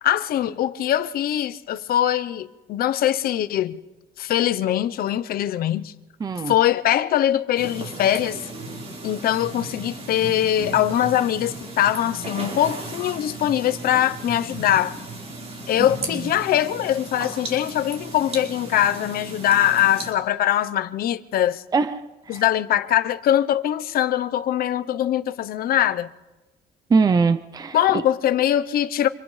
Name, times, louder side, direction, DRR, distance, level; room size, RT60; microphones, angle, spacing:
voice 1, 0.0-3.8 4.2-5.9 6.5-8.4 9.0-15.0 15.7-21.6 22.3-26.1 27.7-29.1, left 11 dB, 60° left, 0.8 m, -22 dB
voice 2, 6.2-6.5 16.1-16.3 21.7-22.4 26.9-28.0, right 4 dB, 25° right, 0.6 m, -22 dB
sound 1, 7.6-20.1, right 2 dB, 40° right, 4.6 m, -35 dB
30.0 x 26.5 x 3.3 m
cardioid pair, 110°, 17 cm